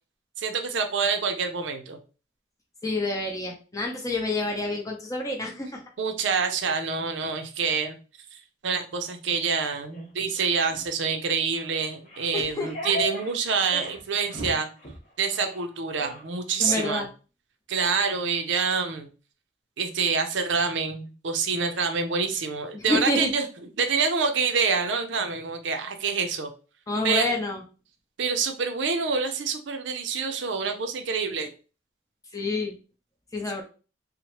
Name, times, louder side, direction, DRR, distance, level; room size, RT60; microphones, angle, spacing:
voice 1, 0.4-2.0 6.0-8.0 8.6-14.7 15.2-17.0 17.7-19.1 19.8-23.5 23.8-26.5 27.0-27.3 28.2-31.5, right 5 dB, 80° right, 6 dB, 0.5 m, -26 dB
voice 2, 2.8-5.8 12.3-12.7 16.6-17.1 22.7-23.3 26.9-27.6 32.3-32.8 33.3-33.6, left 2 dB, 20° left, 1 dB, 0.6 m, -28 dB
sound 1, 9.9-10.1 10.6-10.9 11.5-11.7 12.0-13.3 13.6-14.0 14.3-14.5 14.8-15.0 15.3-15.6 15.9-16.2 16.6-16.9, left 1 dB, 45° left, 1.0 m, -36 dB
2.9 x 2.1 x 2.9 m, 0.34 s
head